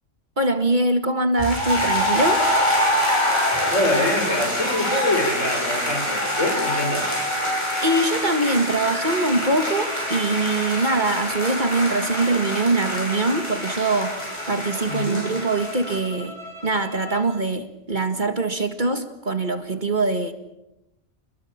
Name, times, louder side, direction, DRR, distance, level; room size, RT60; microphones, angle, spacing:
voice 1, 0.4-2.4 7.8-14.2 14.5-16.3 16.6-20.3, right 2 dB, 40° right, 1.9 m, -23 dB
sound 1, 1.4-16.0, left 1 dB, 20° left, 7.3 m, -25 dB
voice 2, 3.7-7.2 14.8-15.2, left 2 dB, 75° left, 5.9 m, -25 dB
sound 2, 8.9-17.3, left 1 dB, 20° right, 4.1 m, -39 dB
29.5 x 21.5 x 7.3 m
omnidirectional pair, 1.3 m